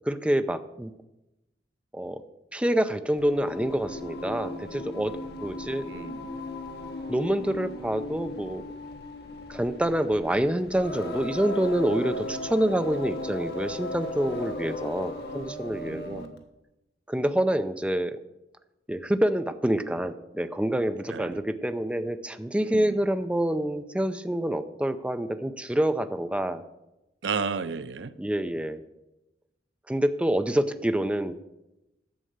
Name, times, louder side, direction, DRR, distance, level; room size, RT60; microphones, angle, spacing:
voice 1, 0.1-0.9 1.9-2.2 2.5-5.2 5.4-5.8 7.1-8.6 9.5-16.2 17.1-18.2 18.9-26.6 28.2-28.8 29.9-31.4, right 1 dB, 5° right, 9 dB, 0.5 m, -27 dB
Singing, 3.2-16.4, left 2 dB, 60° left, 1.5 m, -37 dB
voice 2, 5.8-6.3 15.7-16.4 21.1-21.4 22.6-23.0 27.2-28.1, right 5 dB, 75° right, 14 dB, 0.6 m, -33 dB
11.0 x 7.5 x 6.6 m, 0.93 s
head